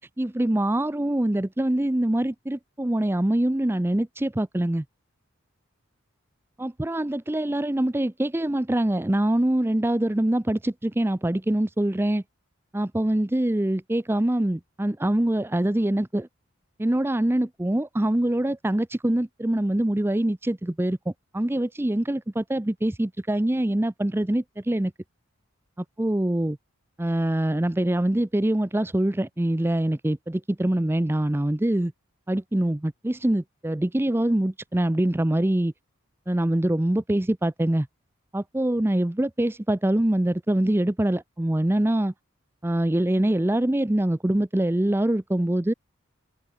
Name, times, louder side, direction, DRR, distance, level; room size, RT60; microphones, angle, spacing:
voice 1, 0.2-4.8 6.6-12.2 12.7-16.3 16.8-24.9 26.0-26.6 27.0-31.9 32.3-35.7 36.3-37.9 38.3-42.1 42.6-45.7, right 1 dB, 10° right, 0.5 m, -24 dB
open air
head